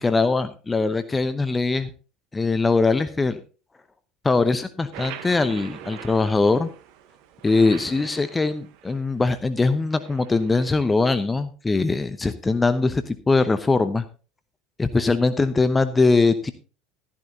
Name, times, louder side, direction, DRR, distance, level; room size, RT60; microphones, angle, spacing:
voice 1, 0.0-1.9 2.3-3.4 4.2-6.7 7.4-14.0 14.8-16.5, left 3 dB, 15° left, 11 dB, 0.8 m, -21 dB
sound 1, 4.9-9.2 9.8-10.8, right 10 dB, 60° right, 1.0 m, -42 dB
13.0 x 11.5 x 2.8 m, 0.34 s
figure-of-eight pair, 70°, 0 cm